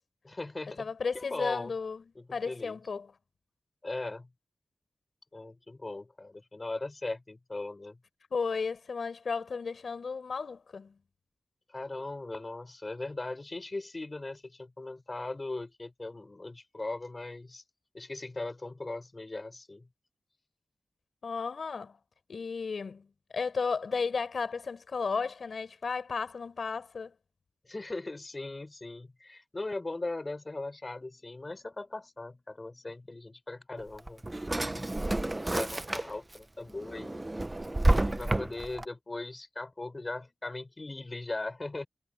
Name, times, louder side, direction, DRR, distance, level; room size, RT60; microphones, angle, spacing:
voice 1, 0.2-0.9 1.1-1.7 2.1-2.8 3.8-4.3 5.3-8.0 11.7-17.6 17.9-19.9 27.6-34.2 34.7-37.3 37.9-41.9, left 2 dB, 35° left, 6.4 m, -39 dB
voice 2, 0.8-2.0 2.3-3.1 8.3-11.0 21.2-22.0 22.3-23.1 23.3-27.1, left 5 dB, 70° left, 4.6 m, -34 dB
Drawer open or close, 33.8-36.4 36.8-38.8, right 2 dB, 25° right, 0.8 m, -30 dB
wide cardioid pair, 70°, 0 cm